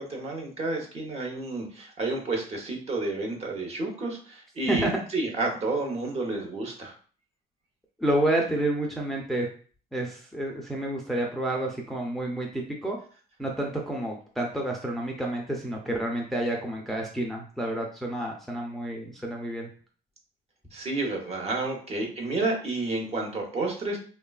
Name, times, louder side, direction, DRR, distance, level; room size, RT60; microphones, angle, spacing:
voice 1, 0.0-6.9 20.7-24.0, right 2 dB, 40° right, 1 dB, 0.8 m, -30 dB
voice 2, 8.0-9.5 9.9-13.0 13.4-19.7, right 1 dB, ahead, 0 dB, 0.4 m, -29 dB
3.0 x 2.3 x 2.3 m, 0.42 s
cardioid pair, 110°, 17 cm